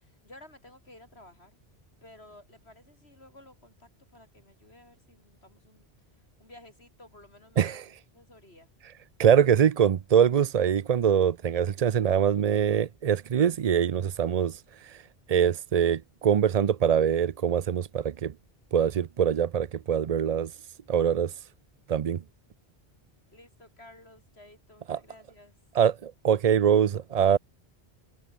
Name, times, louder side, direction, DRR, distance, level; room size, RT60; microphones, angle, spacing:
voice 1, 0.0-1.6 2.0-5.9 6.4-7.8 8.1-8.7 23.3-25.6, left 1 dB, 90° left, 7.3 m, -53 dB
voice 2, 9.2-15.0 15.3-18.3 18.7-20.5 20.9-21.4 21.9-22.2 24.9-25.0 25.7-27.4, right 8 dB, 50° right, 0.5 m, -23 dB
omnidirectional pair, 1.0 m